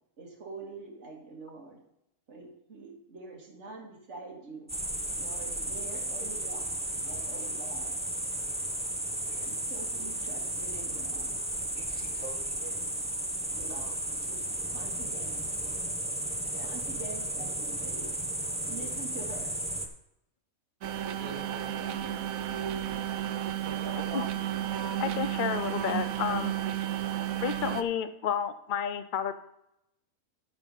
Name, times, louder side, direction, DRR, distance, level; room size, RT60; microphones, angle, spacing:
voice 1, 0.2-1.8 2.3-4.7 5.1-6.6 7.0-8.0 9.4-11.4 12.7-12.9 13.5-15.6 16.6-18.1 18.6-19.5 21.7-22.0, right 3 dB, 55° right, -1 dB, 2.2 m, -45 dB
sound 1, 4.7-19.9, right 1 dB, 5° right, 0.8 m, -34 dB
voice 2, 11.8-12.8 13.7-14.0 16.5-16.7 21.2-21.8 23.6-24.3, right 2 dB, 40° right, 1 dB, 1.5 m, -44 dB
sound 2, 20.8-27.8, right 11 dB, 85° right, 1.1 m, -32 dB
voice 3, 25.0-26.5 27.4-29.3, left 8 dB, 60° left, 11 dB, 0.5 m, -31 dB
12.5 x 5.7 x 5.3 m, 0.82 s
omnidirectional pair, 1.4 m